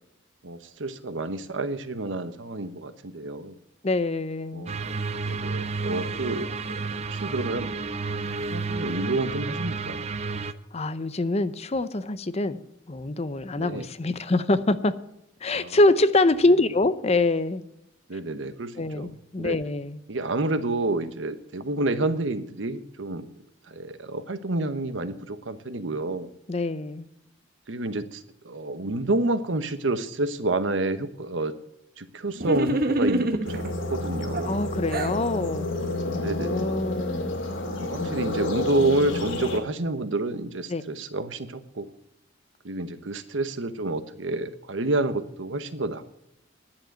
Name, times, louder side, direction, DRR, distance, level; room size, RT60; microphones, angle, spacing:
voice 1, 0.4-3.6 4.5-4.9 5.2-7.7 8.5-10.1 13.6-13.9 15.5-15.8 18.1-19.5 20.1-23.3 23.7-26.3 27.7-31.5 32.0-34.6 36.2-36.7 37.8-41.9 42.6-46.1, right 2 dB, 80° right, 12 dB, 1.0 m, -29 dB
voice 2, 3.8-4.7 10.7-12.6 12.9-14.9 15.4-17.6 18.8-20.0 26.5-27.1 34.4-35.7 36.1-37.3 38.0-38.4 40.7-40.8, left 2 dB, 35° left, 13 dB, 0.7 m, -25 dB
sound 1, 4.7-10.5, right 4 dB, 35° right, 0.6 m, -31 dB
sound 2, 32.4-33.7 34.3-35.2, right 1 dB, 50° right, 1.1 m, -26 dB
sound 3, 33.4-39.6, left 2 dB, 85° left, 2.4 m, -30 dB
11.0 x 7.5 x 9.1 m, 0.80 s
head